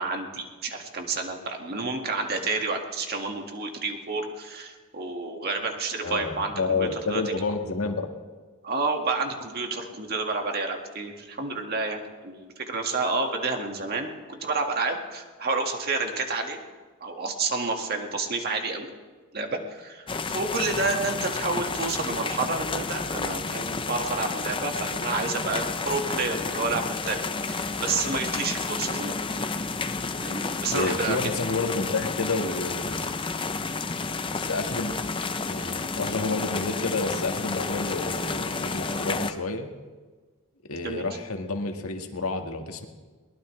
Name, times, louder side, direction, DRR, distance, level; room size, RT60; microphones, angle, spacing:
voice 1, 0.0-7.2 8.6-16.6 17.0-18.9 19.3-29.1 30.2-31.2 40.8-41.1, right 3 dB, 45° right, 3 dB, 1.9 m, -30 dB
voice 2, 6.0-8.1 30.7-33.0 34.3-34.9 35.5-39.7 40.7-42.8, left 3 dB, 75° left, 4 dB, 1.7 m, -29 dB
sound 1, 20.1-39.3, left 4 dB, 25° left, 0.6 m, -31 dB
22.5 x 19.5 x 3.3 m, 1.4 s
head